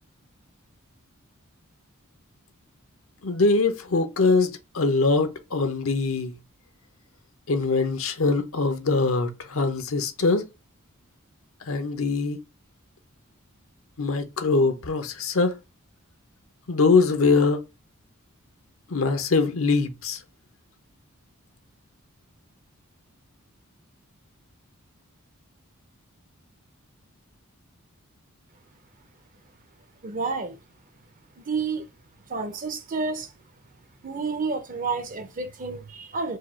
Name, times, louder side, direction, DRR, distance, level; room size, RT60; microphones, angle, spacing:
voice 1, 3.2-6.3 7.5-10.4 11.7-12.4 14.0-15.5 16.7-17.6 18.9-20.2, left 3 dB, 65° left, 0.8 m, -23 dB
voice 2, 30.0-30.6 31.4-31.9 32.3-33.3 34.0-36.4, right 4 dB, 40° right, 0.7 m, -30 dB
4.8 x 2.4 x 4.3 m
head